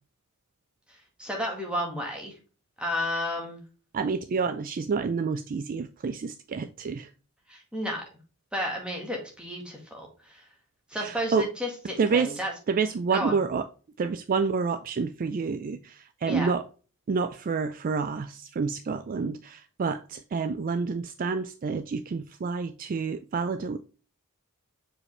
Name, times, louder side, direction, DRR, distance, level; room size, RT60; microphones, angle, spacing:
voice 1, 1.2-2.4 2.8-3.6 7.5-8.0 8.5-10.5 10.9-12.5 13.1-13.4 16.3-16.5, equal, 5° right, 1.7 m, -32 dB
voice 2, 3.9-7.1 10.9-11.5 12.0-12.4 12.7-13.7 14.0-16.7 17.1-23.8, right 5 dB, 40° right, 0.3 m, -28 dB
6.6 x 4.9 x 3.2 m
head